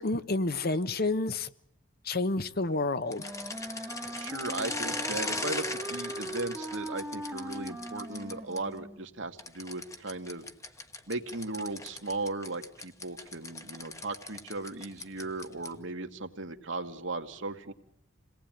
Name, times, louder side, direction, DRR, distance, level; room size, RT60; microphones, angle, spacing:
voice 1, 0.0-1.5 2.0-3.3, left 2 dB, 50° left, 12 dB, 1.0 m, -29 dB
sound 1, 3.1-8.6 9.4-15.9, left 2 dB, 15° left, 1.2 m, -39 dB
Wind instrument woodwind instrument, 3.1-9.1, right 1 dB, 10° right, 1.3 m, -40 dB
voice 2, 4.1-10.5 11.1-17.7, right 2 dB, 70° right, 5 dB, 2.0 m, -37 dB
27.5 x 18.5 x 9.2 m, 0.68 s
head